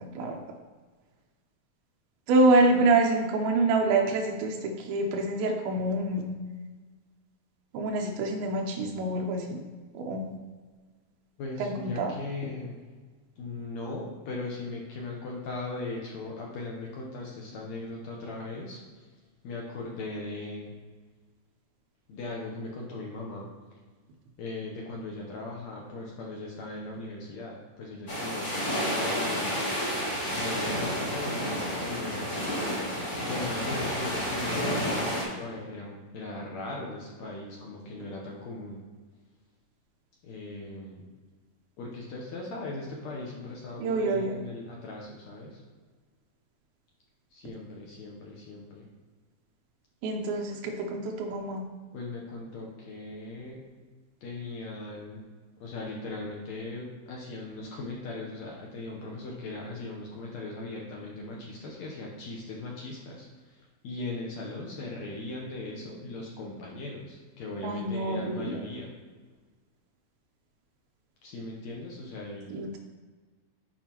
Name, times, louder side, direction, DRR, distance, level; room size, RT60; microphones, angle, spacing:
voice 1, 2.3-6.3 7.7-9.6 9.9-10.4 11.6-12.1 43.8-44.4 50.0-51.7 67.6-68.6 72.5-72.8, right 2 dB, 80° right, 1 dB, 2.5 m, -26 dB
voice 2, 11.4-12.8 13.4-18.8 19.4-20.7 22.1-23.5 24.4-29.7 30.4-33.0 33.2-38.8 40.2-41.0 41.8-45.6 47.3-48.8 51.9-53.6 54.2-55.2 55.6-68.9 71.2-72.6, left 2 dB, 75° left, -2 dB, 1.6 m, -39 dB
sound 1, 28.1-35.2, equal, 30° left, 1.3 m, -30 dB
11.0 x 4.5 x 2.9 m, 1.4 s
omnidirectional pair, 4.3 m